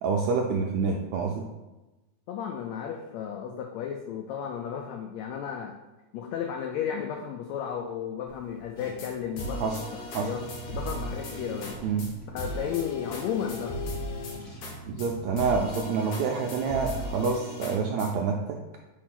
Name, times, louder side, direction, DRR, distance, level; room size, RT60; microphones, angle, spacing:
voice 1, 0.0-1.4 9.6-9.8 10.1-10.3 11.8-12.1 14.9-18.6, right 5 dB, 85° right, 1 dB, 1.6 m, -27 dB
voice 2, 2.3-5.7 6.1-10.4 10.7-11.8 12.3-14.0, left 8 dB, 85° left, 2 dB, 1.5 m, -34 dB
Car / Engine, 8.3-15.5, right 1 dB, 30° left, 2.5 m, -47 dB
sound 1, 8.8-9.1 9.4-11.7 12.0-12.1 12.4-14.7 15.0-15.1 15.4-18.1, left 1 dB, 65° left, 2.3 m, -36 dB
4.7 x 4.6 x 5.8 m, 1.1 s
omnidirectional pair, 3.7 m